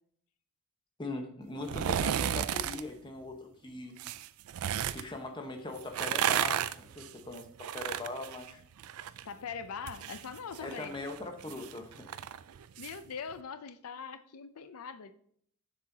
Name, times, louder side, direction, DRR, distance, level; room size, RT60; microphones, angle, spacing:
voice 1, 1.0-3.9 4.9-8.6 10.6-12.1, left 2 dB, 20° left, 4 dB, 1.0 m, -41 dB
sound 1, 1.6-2.8 4.0-5.0 5.8-9.2 9.5-13.0 13.3-13.4, right 9 dB, 75° right, 0.4 m, -33 dB
voice 2, 9.2-10.9 12.8-15.1, left 6 dB, 80° left, 12 dB, 0.5 m, -42 dB
7.4 x 6.9 x 2.7 m, 0.63 s
head